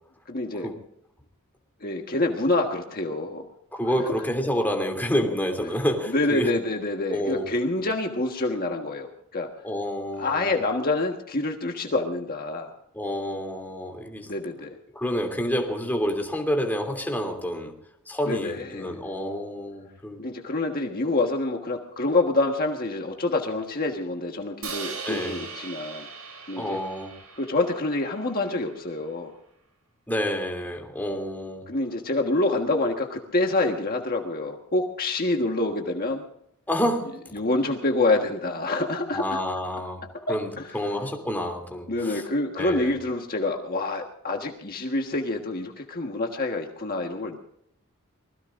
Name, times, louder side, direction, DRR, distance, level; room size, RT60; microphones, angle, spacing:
voice 1, 0.3-0.7 1.8-3.5 6.1-9.5 10.2-12.8 14.3-14.8 18.3-19.0 20.2-26.1 26.5-26.8 27.4-29.3 31.7-36.3 37.3-39.4 40.3-40.7 41.9-47.4, left 2 dB, 45° left, 2 dB, 1.5 m, -27 dB
voice 2, 3.7-6.5 7.1-7.4 9.6-10.5 12.9-14.3 14.9-17.7 18.1-20.2 25.0-25.4 26.6-27.1 30.1-31.6 36.7-37.1 39.1-40.0 40.3-42.3 42.5-43.0, equal, 10° left, 2 dB, 2.9 m, -28 dB
Crash cymbal, 24.6-28.8, right 5 dB, 80° right, 7.1 m, -39 dB
25.5 x 20.5 x 2.6 m, 0.74 s
head